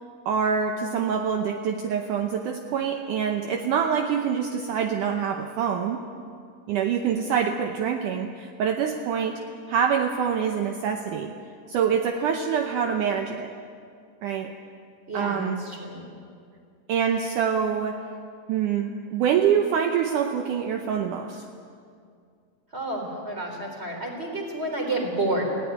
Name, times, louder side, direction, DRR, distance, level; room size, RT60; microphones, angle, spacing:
voice 1, 0.3-6.0 6.7-9.4 9.7-11.3 11.7-13.5 14.2-14.5 15.1-15.6 16.9-18.0 18.5-21.5, right 7 dB, 70° right, 4 dB, 2.2 m, -25 dB
voice 2, 15.1-16.0 22.7-25.4, right 2 dB, 15° right, 1 dB, 3.9 m, -30 dB
20.0 x 16.5 x 9.3 m, 2.3 s
omnidirectional pair, 4.2 m